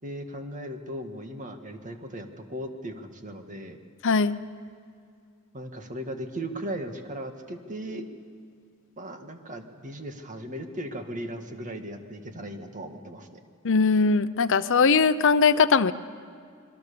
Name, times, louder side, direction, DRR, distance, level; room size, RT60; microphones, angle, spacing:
voice 1, 0.0-3.8 5.5-8.1 9.0-13.4, right 1 dB, 35° right, 5 dB, 1.9 m, -37 dB
voice 2, 4.0-4.4 13.6-15.9, left 5 dB, 60° left, 12 dB, 0.7 m, -20 dB
27.0 x 21.5 x 6.9 m, 2.2 s
head